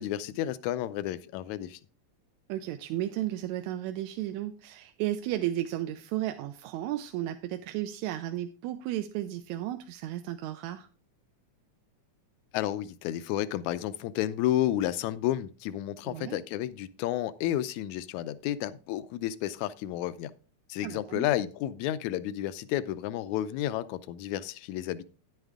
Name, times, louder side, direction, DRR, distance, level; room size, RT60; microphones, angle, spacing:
voice 1, 0.0-1.8 12.5-20.3 20.7-25.0, left 13 dB, 80° left, 15 dB, 1.9 m, -31 dB
voice 2, 2.5-10.9 16.1-16.4 20.8-21.3, right 13 dB, 85° right, 7 dB, 1.9 m, -34 dB
9.8 x 9.3 x 3.5 m, 0.36 s
omnidirectional pair, 3.3 m